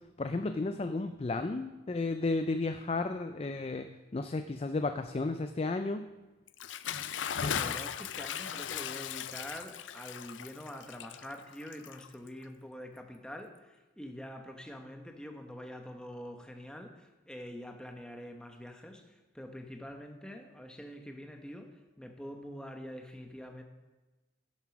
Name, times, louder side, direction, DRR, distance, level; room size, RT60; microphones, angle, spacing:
voice 1, 0.2-6.1, left 3 dB, 30° left, 8 dB, 0.4 m, -33 dB
Bathtub (filling or washing) / Splash splatter, 6.5-12.4, left 8 dB, 90° left, 0.5 m, -38 dB
voice 2, 7.4-23.6, equal, 5° left, 4 dB, 0.9 m, -45 dB
11.0 x 7.4 x 5.9 m, 1.1 s
head